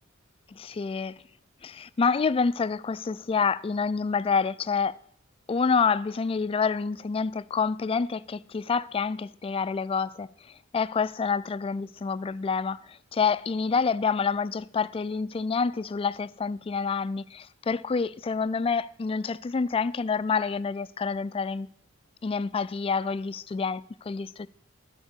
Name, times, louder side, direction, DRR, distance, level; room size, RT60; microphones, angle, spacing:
voice 1, 0.5-1.2 1.6-5.0 5.5-10.3 10.7-21.7 22.2-24.5, left 5 dB, 30° left, 0.3 m, -27 dB
13.0 x 4.5 x 8.2 m
head